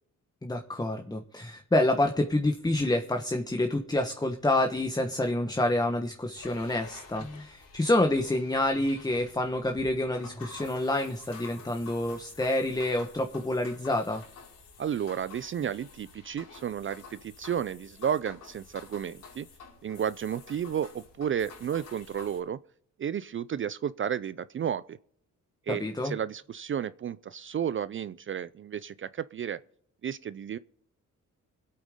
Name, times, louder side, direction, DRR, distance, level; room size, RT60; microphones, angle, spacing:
voice 1, 0.4-14.2 25.7-26.2, left 1 dB, 10° left, 1.1 m, -28 dB
sound 1, 6.3-22.4, left 4 dB, 80° left, 4.7 m, -50 dB
voice 2, 14.8-19.5 19.8-22.6 23.0-25.0 25.7-29.6 30.0-30.6, right 8 dB, 40° right, 0.4 m, -32 dB
21.0 x 8.5 x 3.7 m
cardioid pair, 85°, 31 cm